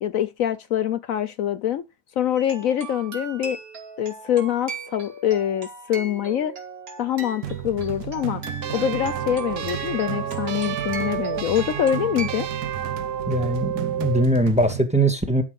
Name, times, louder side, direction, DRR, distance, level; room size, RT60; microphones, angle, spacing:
voice 1, 0.0-1.8 2.2-3.6 4.0-6.5 7.0-8.4 8.7-12.5, left 10 dB, 65° left, 1.1 m, -24 dB
sound 1, 2.3-12.5, right 3 dB, 70° right, 2.8 m, -39 dB
sound 2, 7.4-14.8, right 11 dB, 85° right, 1.5 m, -34 dB
sound 3, 8.6-14.3, right 8 dB, 55° right, 0.8 m, -30 dB
voice 2, 13.3-15.4, right 1 dB, 5° right, 1.5 m, -21 dB
12.0 x 6.1 x 5.3 m
omnidirectional pair, 1.6 m